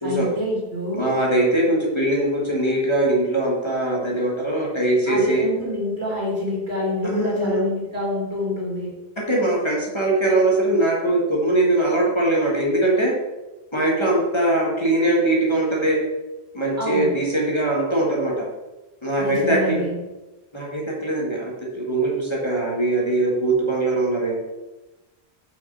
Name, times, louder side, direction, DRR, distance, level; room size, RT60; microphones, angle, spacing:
voice 1, 0.0-1.1 5.1-8.9 16.8-17.1 19.2-20.0, left 1 dB, 85° right, -3 dB, 2.9 m, -26 dB
voice 2, 1.0-5.5 7.0-7.6 9.2-13.1 13.7-16.0 16.5-18.3 19.0-19.8 20.5-24.4, right 1 dB, 25° left, -3 dB, 1.8 m, -21 dB
6.1 x 5.6 x 5.6 m, 1.1 s
omnidirectional pair, 1.1 m